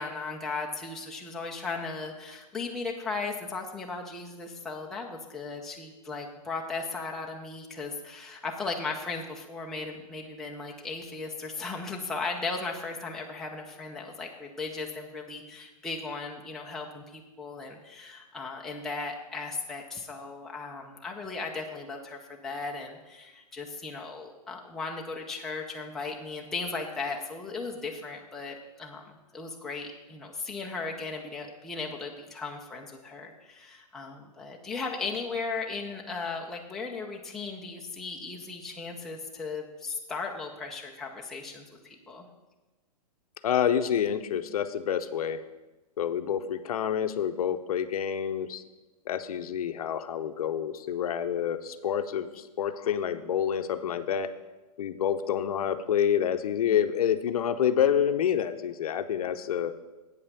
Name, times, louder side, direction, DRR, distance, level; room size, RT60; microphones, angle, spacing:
voice 1, 0.0-42.2, left 4 dB, ahead, -1 dB, 0.5 m, -36 dB
voice 2, 43.4-45.4 46.0-48.6 49.1-54.3 54.8-59.7, left 9 dB, 65° left, 10 dB, 0.7 m, -28 dB
8.1 x 5.6 x 6.7 m, 1.1 s
hypercardioid pair, 155°, 21 cm